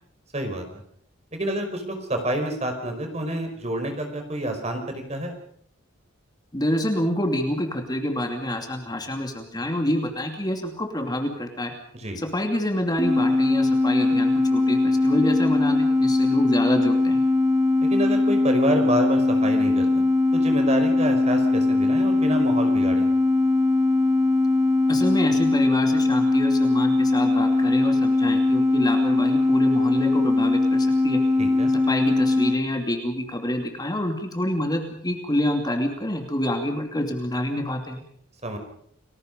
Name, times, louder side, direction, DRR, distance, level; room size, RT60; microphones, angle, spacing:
voice 1, 0.3-0.6 1.3-5.3 11.9-12.2 17.8-20.0 20.3-23.0 31.4-31.7 38.4-38.6, right 1 dB, 35° right, 5 dB, 4.9 m, -28 dB
voice 2, 6.5-11.7 12.2-17.2 24.9-31.2 31.9-38.0, left 1 dB, 20° left, 4 dB, 2.6 m, -27 dB
sound 1, 13.0-32.6, left 2 dB, 15° right, 4.1 m, -20 dB
30.0 x 20.5 x 5.3 m, 0.64 s
head